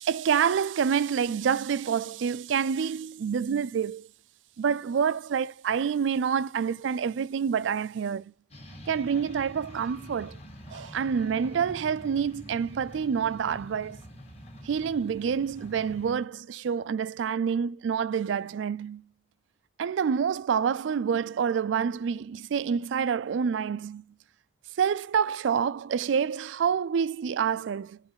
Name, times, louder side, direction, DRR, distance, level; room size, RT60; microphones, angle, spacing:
voice 1, 0.0-4.1 4.6-8.3 8.9-10.4 10.7-14.0 14.6-19.0 19.8-24.0 24.8-28.0, right 7 dB, 85° right, 0.4 m, -27 dB
sound 1, 8.5-16.2, equal, 35° left, 1.6 m, -46 dB
8.0 x 4.0 x 5.6 m
head